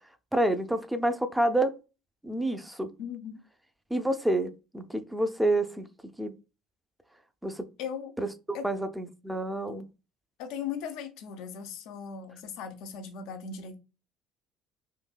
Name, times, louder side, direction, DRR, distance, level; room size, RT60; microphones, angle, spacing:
voice 1, 0.3-1.7 2.2-2.9 3.9-5.9 6.2-6.3 7.4-7.7 8.2-9.9, right 1 dB, 5° right, 0.5 m, -28 dB
voice 2, 3.0-3.4 7.8-8.1 8.5-8.7 10.4-13.8, left 7 dB, 70° left, 0.6 m, -38 dB
3.8 x 2.7 x 2.3 m
hypercardioid pair, 65°, 0 cm